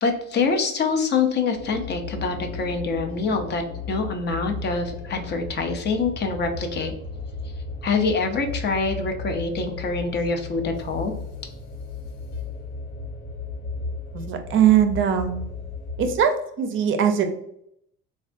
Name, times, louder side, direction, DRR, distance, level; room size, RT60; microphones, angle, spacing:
voice 1, 0.0-3.6 3.9-6.9 7.8-11.1, left 4 dB, 35° left, 5 dB, 0.5 m, -25 dB
sound 1, 1.5-16.2, left 3 dB, 70° left, 0.9 m, -35 dB
voice 2, 14.1-15.4 16.0-17.3, right 8 dB, 40° right, 6 dB, 0.5 m, -21 dB
3.3 x 2.3 x 2.5 m, 0.74 s
cardioid pair, 115°, 30 cm